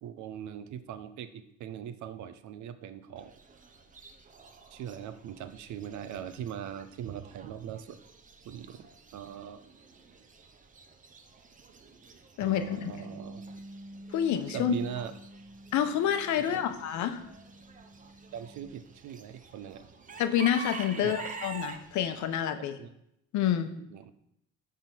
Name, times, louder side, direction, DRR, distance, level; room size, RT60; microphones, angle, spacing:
voice 1, 0.0-3.3 4.7-8.0 8.4-8.9 9.1-9.6 12.4-13.5 14.5-15.1 16.4-16.6 18.3-19.9 21.0-21.1 22.8-22.9 23.8-24.1, right 9 dB, 65° right, 11 dB, 0.7 m, -41 dB
Chicken rooster / Bird, 3.2-22.3, right 4 dB, 25° right, 0.7 m, -48 dB
voice 2, 12.4-12.9 14.1-14.7 15.7-17.2 20.2-22.8 23.3-23.7, left 10 dB, 65° left, 9 dB, 0.8 m, -28 dB
Bass guitar, 12.4-18.7, equal, 45° left, 1.2 m, -48 dB
10.0 x 3.7 x 6.0 m, 0.78 s
cardioid pair, 145°, 31 cm